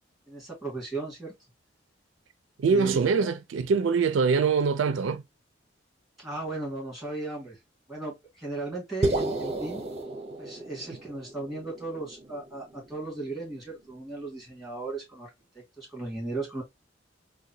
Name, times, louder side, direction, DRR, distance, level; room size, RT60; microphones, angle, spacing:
voice 1, 0.3-1.3 2.7-3.3 6.2-7.6 7.9-9.8 10.4-15.3 15.8-16.6, right 2 dB, ahead, 1.9 m, -36 dB
voice 2, 2.6-5.2 10.9-11.0, right 5 dB, 85° right, 0.4 m, -24 dB
sound 1, 9.0-13.4, right 2 dB, 35° right, 0.6 m, -33 dB
3.7 x 2.2 x 2.7 m
head